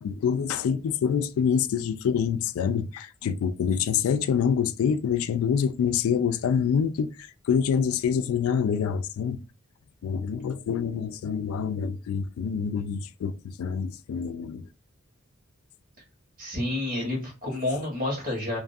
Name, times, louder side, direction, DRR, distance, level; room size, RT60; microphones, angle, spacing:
voice 1, 0.0-9.4 10.0-14.7, left 7 dB, 85° left, 0.3 m, -26 dB
voice 2, 16.4-18.6, left 2 dB, 45° right, 1.3 m, -29 dB
2.6 x 2.3 x 2.5 m
head